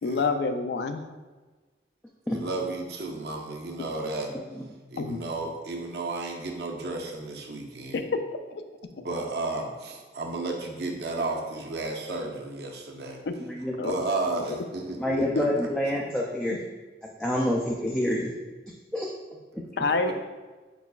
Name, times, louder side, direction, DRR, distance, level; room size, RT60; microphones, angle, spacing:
voice 1, 0.0-1.0 5.0-5.2 7.9-8.0 8.5-8.6 13.8-13.9 14.3-14.4 15.3-15.4 19.8-20.1, left 3 dB, 75° left, 8 dB, 0.4 m, -27 dB
voice 2, 2.3-4.3 4.9-8.0 9.0-13.2 13.8-16.1 19.8-20.1, right 2 dB, 70° right, 1 dB, 0.7 m, -33 dB
voice 3, 13.4-13.7 15.0-16.6 17.2-18.3 18.9-19.1, left 1 dB, 5° left, -3 dB, 0.3 m, -27 dB
5.4 x 4.0 x 2.3 m, 1.3 s
head